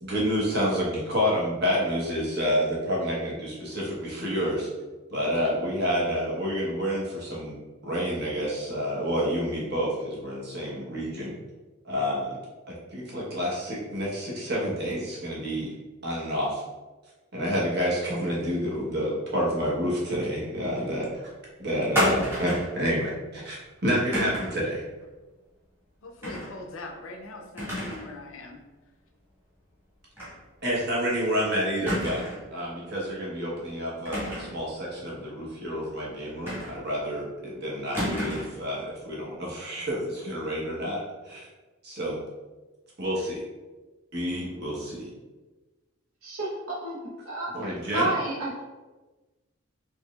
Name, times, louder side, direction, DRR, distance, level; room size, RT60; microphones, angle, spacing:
voice 1, 0.0-4.7 5.1-11.3 11.8-12.4 12.9-15.7 16.0-16.6 17.3-21.1 21.6-23.6 23.8-24.8 30.6-32.2 32.5-41.4 41.8-42.2 43.0-43.4 44.1-45.1 47.5-48.1, equal, 50° right, -5 dB, 1.1 m, -29 dB
sound 1, 21.9-22.8 24.1-24.6 26.2-26.5 26.9-27.0 27.6-28.1 28.4-28.5 30.2-30.4 30.7-30.8 31.9-32.5 34.0-34.6 36.5-37.0 37.9-38.6, equal, 10° right, 1.3 m, -30 dB
voice 2, 26.0-28.6, left 2 dB, 70° left, 4 dB, 0.5 m, -41 dB
voice 3, 46.2-47.0 47.2-47.5 47.8-48.5, right 2 dB, 80° right, -5 dB, 1.1 m, -30 dB
4.3 x 3.1 x 2.4 m, 1.2 s
head